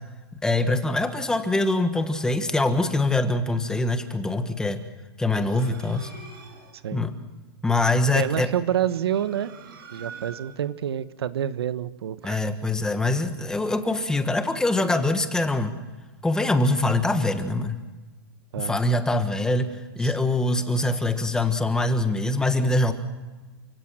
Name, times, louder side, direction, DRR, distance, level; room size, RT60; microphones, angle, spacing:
voice 1, 0.4-4.8 5.2-6.1 6.9-7.1 7.6-8.5 12.2-15.8 16.2-17.8 18.5-22.9, left 2 dB, 5° left, 8 dB, 1.4 m, -24 dB
sound 1, 5.2-6.8 8.7-10.7, right 5 dB, 65° right, 5.4 m, -44 dB
voice 2, 8.1-9.5 9.9-12.4 18.5-18.8 20.0-20.1, right 10 dB, 85° right, 13 dB, 1.3 m, -28 dB
29.0 x 17.0 x 7.6 m, 1.2 s
supercardioid pair, 155°, 13 cm